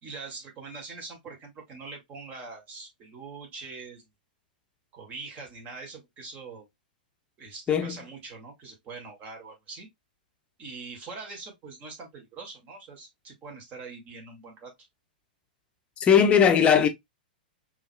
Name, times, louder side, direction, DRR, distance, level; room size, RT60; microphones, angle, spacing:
voice 1, 0.0-4.0 4.9-6.7 7.4-9.9 10.6-14.7, right 4 dB, 30° right, 2.1 m, -43 dB
voice 2, 16.0-16.9, left 7 dB, 25° left, 0.8 m, -19 dB
5.4 x 3.2 x 2.3 m
hypercardioid pair, 115°, 5 cm